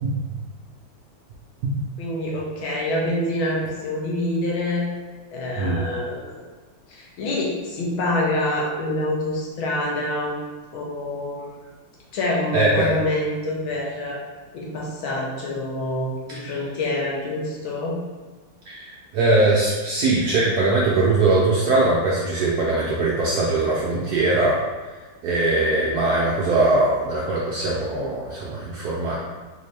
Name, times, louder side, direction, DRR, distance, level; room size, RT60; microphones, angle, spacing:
voice 1, 0.0-0.4 1.6-1.7 5.6-5.8 12.5-13.0 16.3-16.5 18.7-24.6 25.2-29.2, right 2 dB, 75° right, -4 dB, 0.9 m, -21 dB
voice 2, 2.0-4.9 5.3-6.4 6.9-10.4 10.7-11.7 12.1-14.2 14.5-18.0, left 1 dB, 85° left, -3 dB, 1.7 m, -26 dB
4.2 x 2.7 x 3.2 m, 1.3 s
omnidirectional pair, 2.1 m